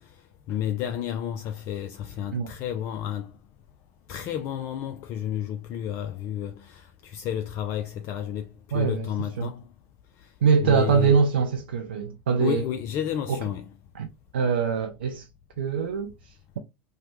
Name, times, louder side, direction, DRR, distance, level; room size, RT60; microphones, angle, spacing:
voice 1, 0.5-3.3 4.1-8.5 8.7-9.6 10.6-11.1 12.4-13.6, left 10 dB, 50° left, 0.4 m, -31 dB
voice 2, 8.7-9.5 10.4-12.6 13.3-13.4 13.9-14.1 14.3-15.3 15.6-16.6, right 6 dB, 85° right, 0.4 m, -24 dB
3.1 x 2.1 x 3.0 m
hypercardioid pair, 90°, 6 cm